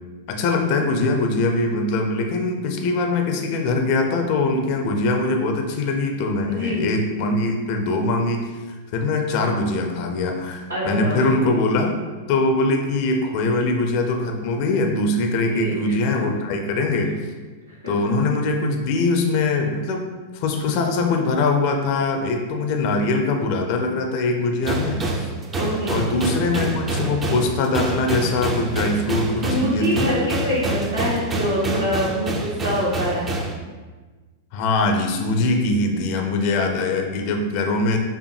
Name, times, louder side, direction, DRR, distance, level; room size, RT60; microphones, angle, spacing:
voice 1, 0.3-12.0 12.3-17.2 17.9-20.1 20.3-25.3 25.9-30.1 34.5-38.0, left 2 dB, 45° left, 4 dB, 0.5 m, -22 dB
voice 2, 6.5-6.8 10.7-11.2 15.4-15.9 17.8-17.9 25.6-26.0 29.4-33.3, equal, 80° right, -7 dB, 1.5 m, -24 dB
sound 1, 24.6-33.6, right 2 dB, 20° right, 0.5 m, -27 dB
5.5 x 2.2 x 3.0 m, 1.3 s
figure-of-eight pair, 95°, 0 cm